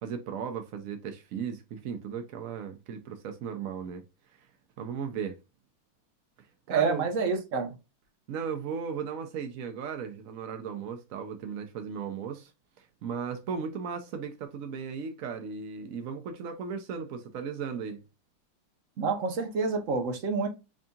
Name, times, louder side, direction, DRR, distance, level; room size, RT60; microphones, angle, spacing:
voice 1, 0.0-4.0 4.3-4.5 4.8-5.4 6.4-7.0 8.3-12.5 12.8-18.0, right 6 dB, 75° right, 0.7 m, -36 dB
voice 2, 6.7-7.7 19.0-20.5, right 4 dB, 50° right, 1.1 m, -28 dB
5.3 x 2.7 x 2.3 m
omnidirectional pair, 2.1 m